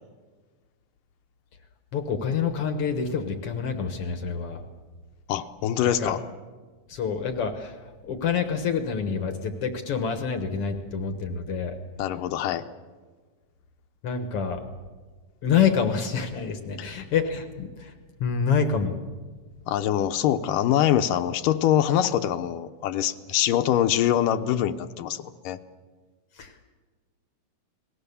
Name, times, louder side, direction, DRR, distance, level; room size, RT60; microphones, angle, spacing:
voice 1, 1.9-4.6 5.8-6.1 6.9-7.8 8.0-11.7 14.0-14.6 15.4-17.9 18.2-19.0 26.4-26.6, left 6 dB, 55° left, 7 dB, 1.7 m, -27 dB
voice 2, 5.3-6.2 12.0-12.7 19.7-25.6, left 11 dB, 80° left, 9 dB, 2.4 m, -24 dB
30.0 x 19.5 x 6.9 m, 1.4 s
omnidirectional pair, 3.8 m